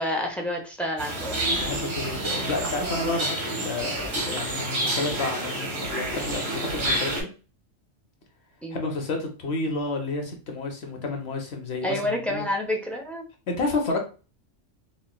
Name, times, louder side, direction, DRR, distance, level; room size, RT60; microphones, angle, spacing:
voice 1, 0.0-1.4 8.6-8.8 11.8-13.2, left 1 dB, ahead, 0 dB, 0.4 m, -28 dB
sound 1, 1.0-7.2, right 1 dB, 60° right, 1.4 m, -29 dB
voice 2, 1.5-7.3 8.7-12.4 13.5-14.0, left 3 dB, 60° left, 3 dB, 1.0 m, -30 dB
4.3 x 2.2 x 2.3 m, 0.34 s
omnidirectional pair, 1.2 m